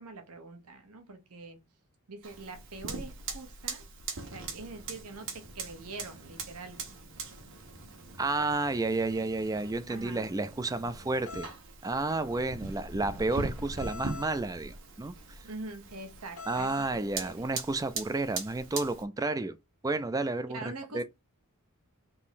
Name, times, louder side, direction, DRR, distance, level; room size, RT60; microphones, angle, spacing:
voice 1, 0.0-1.6 2.1-3.8 4.3-6.9 9.9-10.3 15.4-17.4 20.5-21.0, right 3 dB, 80° right, 1.1 m, -44 dB
Fire, 2.2-19.0, right 4 dB, 60° right, 1.3 m, -41 dB
voice 2, 8.2-11.5 11.8-15.1 16.5-19.6 19.8-21.0, right 3 dB, 15° right, 0.3 m, -31 dB
sound 1, 11.3-11.5 13.8-14.3 16.4-16.9, left 5 dB, 70° left, 1.0 m, -43 dB
3.8 x 3.0 x 4.1 m
head